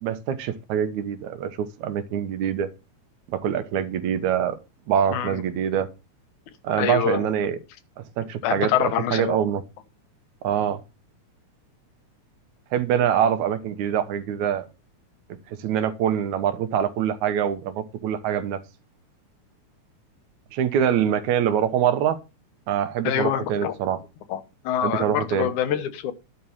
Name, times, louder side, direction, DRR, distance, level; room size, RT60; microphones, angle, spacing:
voice 1, 0.0-2.7 3.3-4.6 4.9-5.9 6.6-7.6 8.0-9.6 10.4-10.8 12.7-14.7 15.6-18.6 20.5-22.2 22.7-24.0 24.8-25.5, right 9 dB, 75° right, 2.4 m, -24 dB
voice 2, 5.1-5.4 6.8-7.3 8.4-9.4 23.0-23.7 24.3-26.1, left 10 dB, 80° left, 2.5 m, -25 dB
11.0 x 4.7 x 7.1 m
omnidirectional pair, 3.5 m